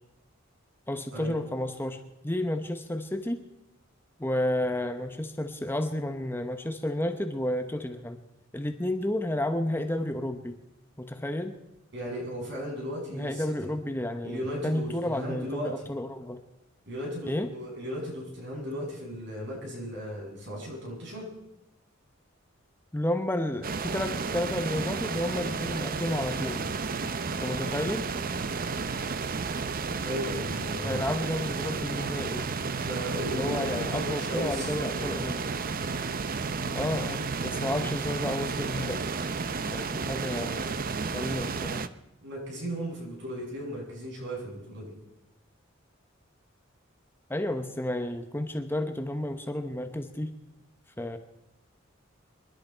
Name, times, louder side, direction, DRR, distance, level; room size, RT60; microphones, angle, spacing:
voice 1, 0.9-3.4 4.2-8.2 8.5-10.6 11.0-11.5 13.1-16.4 17.2-17.5 22.9-26.6 27.4-28.1 30.8-32.5 33.3-35.4 36.7-39.1 39.7-40.8 41.1-41.9 47.3-50.3 51.0-51.2, left 1 dB, 10° left, 7 dB, 0.9 m, -31 dB
voice 2, 11.9-13.6 14.2-15.9 16.9-21.3 30.0-31.1 32.8-35.1 42.2-44.9, equal, 60° right, -2 dB, 7.3 m, -36 dB
sound 1, 23.6-41.9, right 4 dB, 45° right, 0.7 m, -32 dB
26.0 x 11.5 x 4.5 m, 0.91 s
head